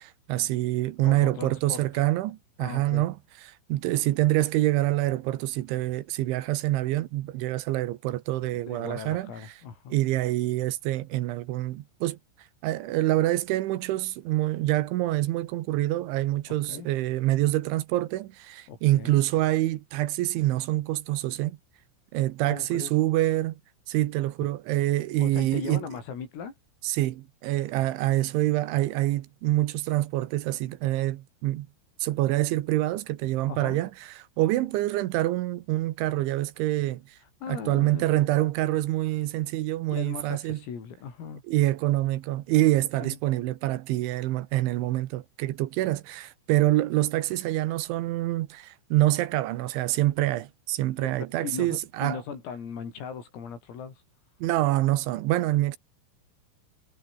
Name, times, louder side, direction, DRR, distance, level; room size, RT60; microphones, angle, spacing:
voice 1, 0.0-3.2 3.4-9.3 9.9-12.2 12.6-21.6 22.1-23.6 23.9-25.9 26.8-31.7 32.0-37.0 37.5-40.6 41.5-52.2 54.4-55.8, right 16 dB, 75° right, 3.3 m, -26 dB
voice 2, 1.0-2.0 2.6-3.0 8.5-10.0 16.5-16.9 18.7-19.2 22.5-22.9 25.2-26.5 33.5-33.8 37.4-38.1 39.8-41.4 43.0-43.2 51.0-54.0, left 6 dB, 80° left, 8.4 m, -38 dB
omnidirectional pair, 5.9 m